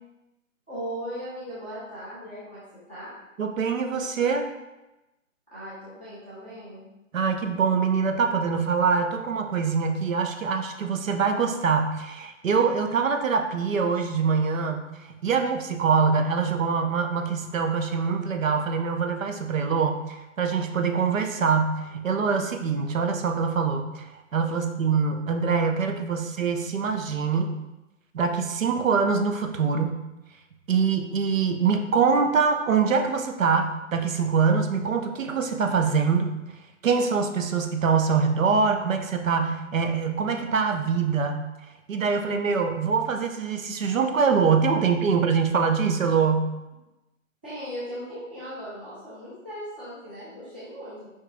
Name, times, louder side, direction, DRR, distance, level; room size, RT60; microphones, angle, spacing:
voice 1, 0.7-2.6 2.9-3.1 5.5-6.8 47.4-51.1, equal, 10° right, -12 dB, 0.4 m, -38 dB
voice 2, 3.4-4.5 7.1-27.6 28.1-29.9 30.7-36.3 36.8-41.4 41.9-46.5, right 5 dB, 80° right, 6 dB, 0.7 m, -24 dB
4.7 x 4.4 x 2.2 m, 1.0 s
hypercardioid pair, 145°, 39 cm